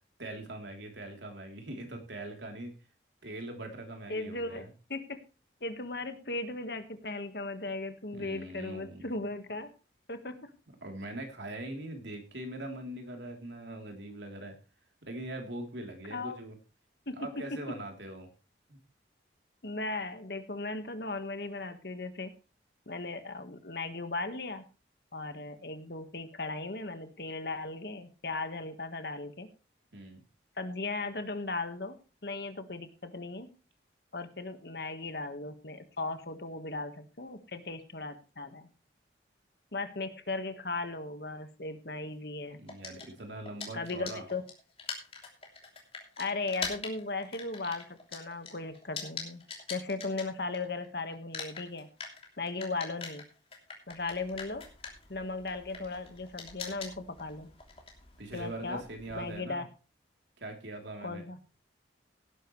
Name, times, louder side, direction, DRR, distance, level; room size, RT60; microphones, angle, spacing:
voice 1, 0.2-2.7 3.2-4.7 8.1-9.1 10.8-14.5 15.0-16.6 17.2-18.3 18.7-18.8 29.9-30.2 42.6-44.2 58.2-59.6 60.4-61.2, right 1 dB, 70° right, 3 dB, 3.4 m, -42 dB
voice 2, 4.1-5.2 5.6-9.7 10.1-10.5 16.1-16.4 17.1-17.2 17.5-17.6 19.6-22.3 22.9-24.6 25.1-29.5 30.6-31.9 32.2-33.5 34.1-38.7 39.7-42.6 43.7-44.4 46.2-49.4 49.7-51.9 52.4-53.2 53.9-54.6 55.1-57.5 58.3-58.8 59.1-59.7 61.0-61.4, left 3 dB, 60° left, 9 dB, 1.5 m, -37 dB
sound 1, 42.7-50.9 51.1-59.4, left 5 dB, 30° left, 3.1 m, -43 dB
17.5 x 10.0 x 3.2 m, 0.33 s
head